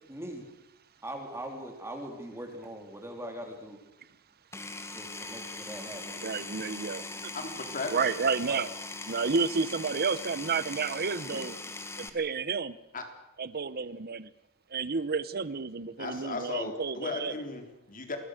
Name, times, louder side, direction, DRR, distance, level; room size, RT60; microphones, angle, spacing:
voice 1, 0.1-0.4 1.0-3.8 4.9-6.3 8.5-8.6 11.3-11.8, right 1 dB, 10° right, 3 dB, 3.7 m, -41 dB
Power tool, 4.5-12.1, left 3 dB, 10° left, 1.8 m, -41 dB
voice 2, 6.2-7.3 7.8-8.7 9.1-11.5 12.0-12.8 13.4-14.3 14.7-17.3, right 5 dB, 45° right, 15 dB, 0.9 m, -31 dB
voice 3, 7.3-8.0 12.9-13.0 16.0-18.2, left 3 dB, 40° left, 5 dB, 3.9 m, -36 dB
27.5 x 21.5 x 6.6 m, 0.90 s
head